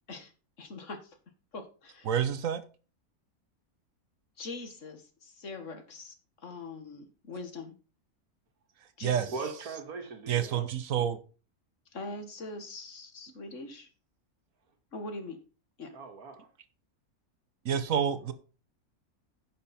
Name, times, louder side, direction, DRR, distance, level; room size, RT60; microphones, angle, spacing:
voice 1, 0.6-1.2 1.5-2.1 4.4-6.1 6.4-7.7 9.0-9.3 11.9-13.9 14.9-15.4 15.8-15.9, left 2 dB, 55° left, 1.9 m, -42 dB
voice 2, 2.1-2.6 9.0-9.3 10.3-11.2 17.6-18.3, right 8 dB, 65° right, 1.3 m, -28 dB
voice 3, 9.3-10.7 15.9-16.5 18.2-18.3, right 4 dB, 85° right, 2.1 m, -40 dB
10.0 x 6.8 x 4.2 m
omnidirectional pair, 1.5 m